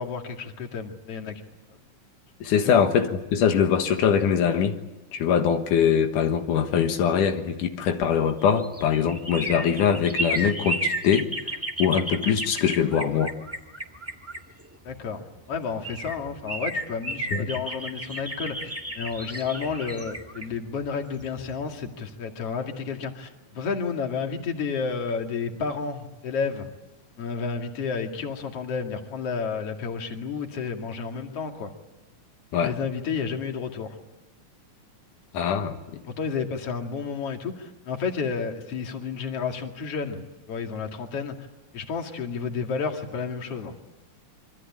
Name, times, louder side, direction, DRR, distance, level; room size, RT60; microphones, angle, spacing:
voice 1, 0.0-1.4 2.6-2.8 14.8-26.7 27.2-31.7 32.6-34.0 36.1-40.2 40.5-41.5 41.7-43.7, left 5 dB, 50° left, 3 dB, 3.2 m, -31 dB
voice 2, 2.4-4.8 5.1-11.5 11.8-13.3 17.3-17.5 32.5-32.7 35.3-35.8, left 7 dB, 90° left, 5 dB, 3.0 m, -22 dB
sound 1, 8.2-15.0 15.5-15.6 15.8-21.6 21.9-22.0, right 1 dB, 10° right, 0.9 m, -33 dB
26.5 x 24.5 x 8.7 m, 1.0 s
omnidirectional pair, 3.5 m